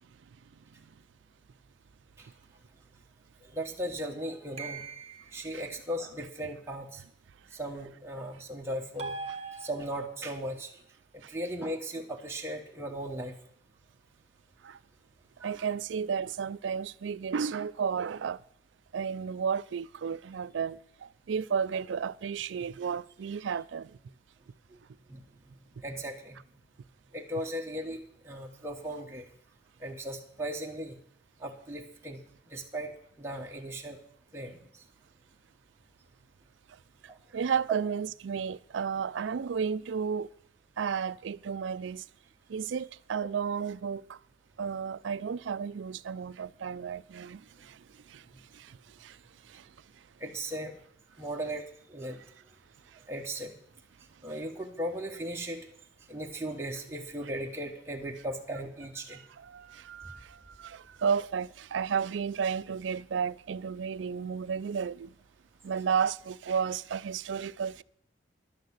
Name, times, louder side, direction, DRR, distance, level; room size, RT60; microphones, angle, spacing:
voice 1, 3.5-4.9 5.3-7.0 7.5-9.1 9.6-10.7 11.3-13.3 15.4-15.5 25.1-25.2 25.8-26.4 27.1-28.0 28.2-29.2 29.8-31.0 31.4-32.2 32.5-32.9 33.2-34.0 34.3-34.6 50.2-50.8 51.2-51.6 51.9-52.2 53.1-53.5 54.2-55.7 56.1-59.2, right 1 dB, 15° right, 1.3 m, -37 dB
sound 1, 4.6-5.5 9.0-10.2, right 4 dB, 35° right, 1.2 m, -40 dB
voice 2, 15.4-18.4 18.9-24.0 37.3-40.3 40.8-42.0 42.5-44.2 44.6-48.2 48.5-49.2 49.4-49.7 59.1-65.1 65.6-67.8, right 6 dB, 75° right, 0.4 m, -33 dB
11.0 x 6.6 x 8.0 m
head